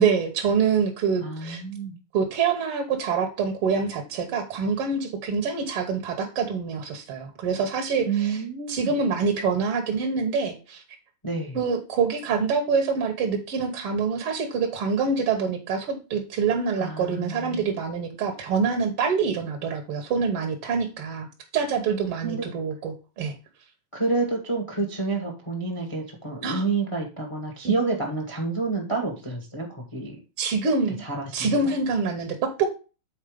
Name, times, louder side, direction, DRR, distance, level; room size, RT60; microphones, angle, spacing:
voice 1, 0.0-1.6 2.1-8.4 8.7-10.8 11.5-21.3 21.5-23.3 26.4-26.6 27.6-27.7 30.4-31.0 31.3-32.8, right 5 dB, 65° right, 4 dB, 1.4 m, -25 dB
voice 2, 1.2-1.9 8.0-8.9 11.2-11.6 16.8-17.6 22.2-22.4 23.9-30.2 31.0-31.5, right 3 dB, 30° left, 1 dB, 0.5 m, -29 dB
7.2 x 4.4 x 5.0 m, 0.32 s
omnidirectional pair, 3.9 m